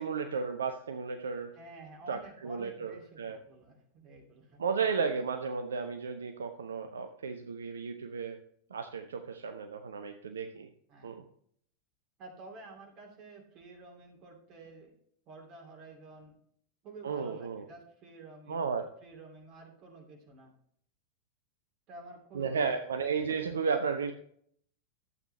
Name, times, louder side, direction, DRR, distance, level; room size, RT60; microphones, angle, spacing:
voice 1, 0.0-1.5 2.1-3.4 4.6-8.4 8.7-10.7 11.0-11.2 17.0-17.7 18.5-18.8 22.3-24.1, right 5 dB, 70° right, 7 dB, 0.6 m, -33 dB
voice 2, 1.5-4.6 10.9-11.2 12.2-14.9 15.3-16.4 16.8-20.5 21.9-23.0, right 3 dB, 35° right, 2 dB, 2.6 m, -51 dB
12.0 x 8.0 x 3.2 m, 0.65 s
figure-of-eight pair, 90°, 0 cm